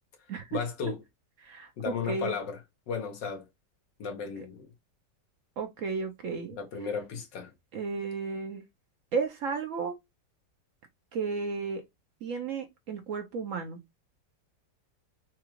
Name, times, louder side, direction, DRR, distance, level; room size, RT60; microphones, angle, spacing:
voice 1, 0.5-1.0 1.8-2.6 2.9-3.5 4.0-4.7 6.5-7.5, left 6 dB, 85° left, 1.7 m, -34 dB
voice 2, 1.4-2.4 5.6-6.6 7.7-8.6 9.1-9.9 11.1-11.8 12.2-13.8, right 5 dB, 65° right, 0.8 m, -33 dB
4.7 x 2.3 x 3.0 m
omnidirectional pair, 1.9 m